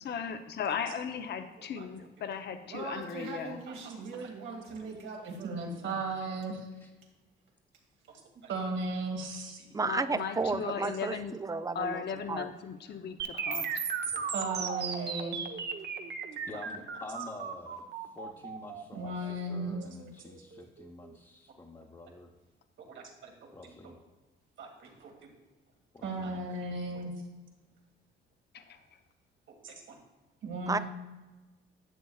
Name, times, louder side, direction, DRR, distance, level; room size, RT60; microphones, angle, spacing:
voice 1, 0.0-3.6 9.8-11.3 11.7-13.7 28.5-28.8, left 7 dB, 60° left, 7 dB, 0.7 m, -37 dB
voice 2, 2.7-6.0 24.8-24.9, right 4 dB, 90° right, -1 dB, 2.1 m, -42 dB
voice 3, 5.3-6.6 8.4-9.7 10.6-10.7 14.1-15.4 16.5-16.6 19.0-19.8 22.9-23.9 24.6-24.9 26.0-27.1 29.6-30.0 30.4-30.8, right 2 dB, 75° right, 2 dB, 1.8 m, -36 dB
voice 4, 9.7-12.5 30.7-30.8, right 4 dB, 15° right, 13 dB, 0.4 m, -32 dB
voice 5, 13.2-14.0 16.5-17.8 18.2-22.3 23.5-23.9 25.9-26.4, left 2 dB, 20° left, -1 dB, 0.9 m, -48 dB
sound 1, 13.2-21.2, right 6 dB, 55° right, 0.9 m, -36 dB
11.0 x 8.1 x 2.4 m, 1.2 s
cardioid pair, 90°, 20 cm